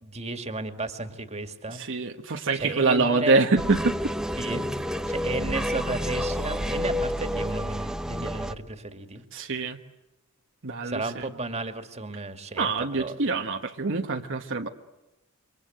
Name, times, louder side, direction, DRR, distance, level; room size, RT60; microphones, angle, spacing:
voice 1, 0.0-1.8 2.5-3.4 4.4-4.7 5.1-9.2 10.8-12.7 13.0-13.1, right 2 dB, 30° right, 7 dB, 2.3 m, -33 dB
voice 2, 1.7-4.0 9.3-9.8 10.6-11.3 12.6-14.7, right 3 dB, 60° right, 3 dB, 1.4 m, -25 dB
sound 1, 3.6-8.5, equal, 5° right, 0.9 m, -29 dB
28.0 x 25.0 x 8.0 m, 1.0 s
head